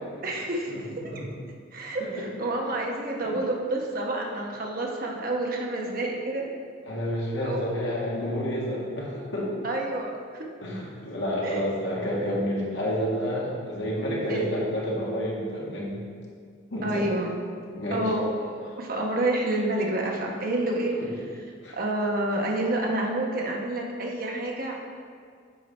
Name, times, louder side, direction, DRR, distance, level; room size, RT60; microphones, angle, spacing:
voice 1, 0.2-0.7 1.7-6.5 6.9-7.1 7.4-7.6 9.6-10.5 11.4-11.7 14.3-14.5 16.8-17.3 17.9-21.0 21.7-24.7, right 1 dB, 50° right, 0 dB, 1.0 m, -29 dB
voice 2, 6.9-9.5 10.6-16.0 16.7-17.1 17.7-18.0 21.6-21.8, equal, 70° left, -5 dB, 1.8 m, -29 dB
7.9 x 4.6 x 5.2 m, 2.2 s
head